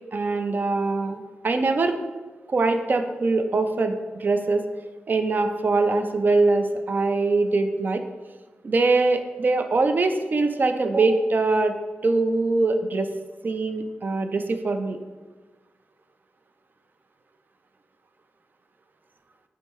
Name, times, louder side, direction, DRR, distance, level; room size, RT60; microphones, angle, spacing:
voice 1, 0.1-1.2 1.4-1.9 2.5-3.9 4.2-4.6 5.1-8.0 8.6-11.7 12.0-13.1 13.4-15.0, right 3 dB, 50° right, 7 dB, 0.4 m, -22 dB
4.2 x 3.5 x 3.0 m, 1.3 s
cardioid pair, 65°, 4 cm